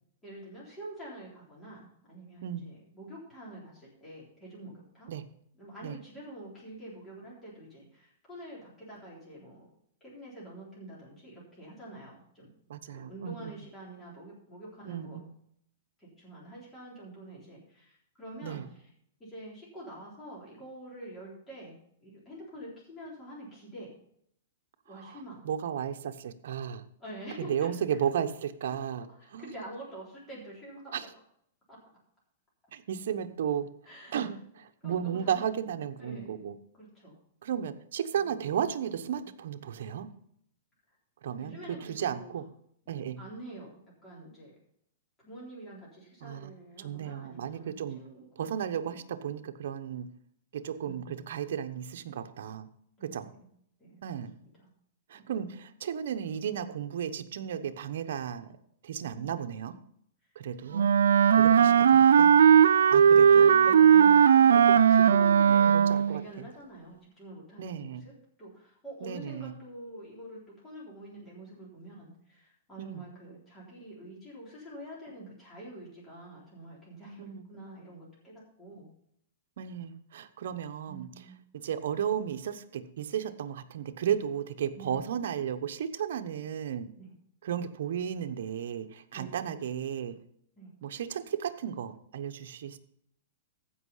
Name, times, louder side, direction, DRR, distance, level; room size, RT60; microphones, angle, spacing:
voice 1, 0.2-5.1 5.6-9.7 10.0-12.5 12.9-15.2 16.0-18.8 19.2-21.7 22.0-23.9 24.9-25.5 27.0-27.7 28.0-28.1 28.7-28.8 29.1-31.0 31.7-31.8 33.9-34.3 34.8-35.4 36.0-36.5 36.7-37.2 38.2-38.3 39.2-39.3 41.4-42.4 43.2-44.5 45.2-49.0 53.0-53.5 53.8-54.0 54.4-54.7 55.1-55.4 61.2-62.7 63.0-68.1 68.4-78.9 80.9-81.4 84.8-85.1 87.0-87.1 89.1-89.5 90.6-90.7, right 1 dB, 10° left, -7 dB, 3.7 m, -46 dB
voice 2, 12.7-13.4 14.9-15.1 18.4-18.6 25.0-25.1 25.4-26.8 27.4-29.1 29.3-29.5 30.9-31.1 32.7-33.7 34.1-36.5 37.4-40.1 41.2-41.6 42.0-42.4 42.9-43.2 46.2-46.5 46.8-48.0 48.4-50.1 50.5-52.7 53.0-53.3 54.0-54.3 55.1-58.5 58.8-59.8 60.3-60.9 61.3-62.3 62.9-64.3 64.7-65.1 65.5-66.5 67.6-68.0 69.0-69.5 72.8-73.0 77.2-77.4 79.6-81.1 81.5-86.9 87.4-90.2 90.8-92.8, right 9 dB, 65° right, 8 dB, 1.0 m, -34 dB
Wind instrument woodwind instrument, 60.7-66.2, right 8 dB, 90° right, 0.4 m, -18 dB
15.0 x 5.6 x 5.6 m, 0.69 s
hypercardioid pair, 160°, 0 cm